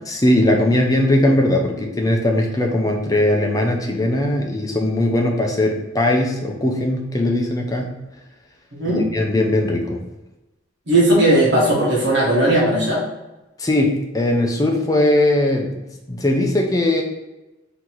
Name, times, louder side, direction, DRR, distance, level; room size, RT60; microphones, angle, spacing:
voice 1, 0.1-8.0 8.8-10.0 13.6-15.7 16.1-17.0, left 1 dB, 20° left, 1 dB, 0.6 m, -19 dB
voice 2, 8.7-9.0 10.9-13.0, right 1 dB, 60° right, -5 dB, 1.6 m, -17 dB
4.0 x 2.9 x 4.5 m, 1.0 s
head